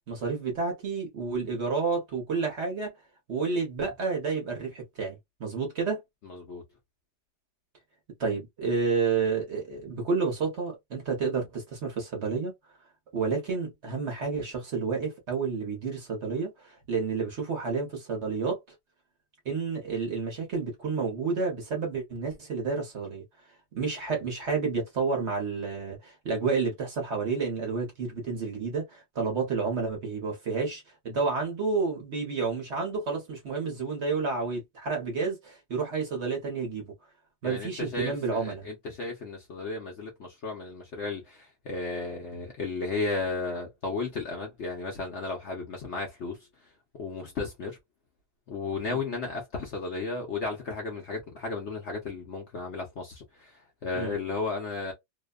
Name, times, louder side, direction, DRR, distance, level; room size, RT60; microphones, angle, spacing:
voice 1, 0.1-2.9 3.3-6.0 8.2-12.5 13.1-18.6 19.4-23.2 23.7-36.9 37.4-38.7 48.9-49.0 53.9-54.2, right 4 dB, 50° right, 1.0 m, -30 dB
voice 2, 6.2-6.6 37.4-46.4 47.0-47.8 48.5-54.9, left 3 dB, 55° left, 0.8 m, -34 dB
2.8 x 2.1 x 2.3 m
omnidirectional pair, 1.8 m